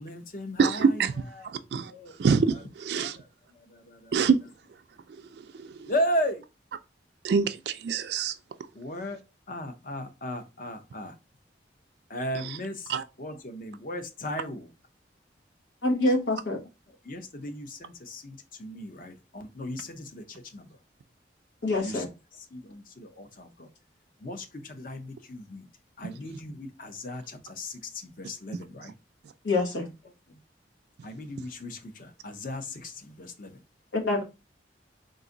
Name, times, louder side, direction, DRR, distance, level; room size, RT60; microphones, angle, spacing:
voice 1, 0.0-1.5 1.9-2.2 2.5-2.6 2.9-4.5 5.8-6.4 8.7-9.2 9.5-11.2 12.1-12.9 13.2-14.7 16.9-20.8 21.8-22.0 22.3-23.7 24.2-25.7 26.0-28.9 30.0-30.4 31.0-33.6, equal, 50° left, 0.6 m, -36 dB
voice 2, 0.6-1.1 1.7-1.9 2.2-3.2 4.1-4.4 5.6-5.9 7.2-8.3 12.9-13.0, right 5 dB, 65° right, 0.3 m, -25 dB
voice 3, 15.8-16.6 21.6-22.1 29.4-29.9 33.9-34.2, left 2 dB, 85° left, 1.4 m, -25 dB
3.9 x 2.5 x 3.8 m
head